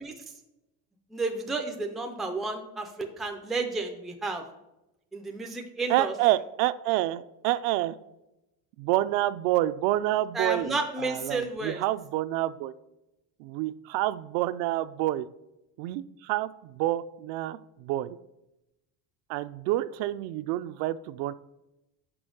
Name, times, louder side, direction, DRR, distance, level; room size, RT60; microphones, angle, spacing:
voice 1, 1.1-4.4 5.1-6.1 10.3-11.8, right 3 dB, ahead, 3 dB, 0.3 m, -31 dB
voice 2, 5.9-8.0 8.8-12.7 13.4-15.3 15.8-18.2 19.3-21.3, right 15 dB, 75° right, 14 dB, 0.5 m, -28 dB
6.2 x 5.3 x 6.2 m, 0.92 s
cardioid pair, 180°, 36 cm